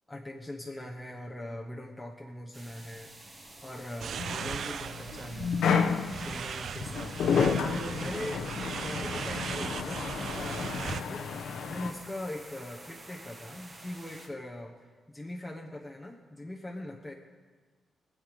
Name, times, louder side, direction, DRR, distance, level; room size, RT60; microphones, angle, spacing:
voice 1, 0.1-3.1 3.6-5.6 6.2-14.8 15.1-17.2, left 1 dB, 10° left, -2 dB, 1.1 m, -41 dB
sound 1, 2.5-14.3, right 2 dB, 25° right, 1.8 m, -49 dB
sound 2, 4.0-11.0, right 7 dB, 55° right, 0.3 m, -38 dB
sound 3, 4.2-11.9, left 6 dB, 75° left, 1.0 m, -31 dB
23.5 x 8.1 x 5.1 m, 1.5 s
wide cardioid pair, 145°, 0 cm